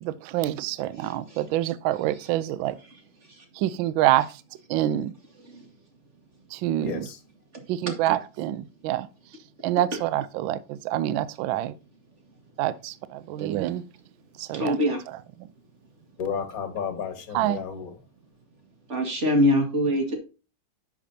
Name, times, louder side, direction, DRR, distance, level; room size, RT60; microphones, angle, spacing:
voice 1, 0.0-2.8 3.5-4.4 4.7-5.1 6.5-7.1 7.7-9.1 9.6-11.8 12.6-13.8 14.4-14.8 15.4-15.5 17.3-17.6, right 13 dB, 75° right, 1.3 m, -26 dB
voice 2, 1.0-1.4 3.3-3.4 5.5-5.7 7.5-7.6 14.5-15.0 18.9-20.2, left 1 dB, 35° right, 2.1 m, -24 dB
voice 3, 6.8-7.2 16.2-17.9, left 6 dB, 45° left, 1.9 m, -32 dB
10.0 x 6.8 x 2.7 m
omnidirectional pair, 2.3 m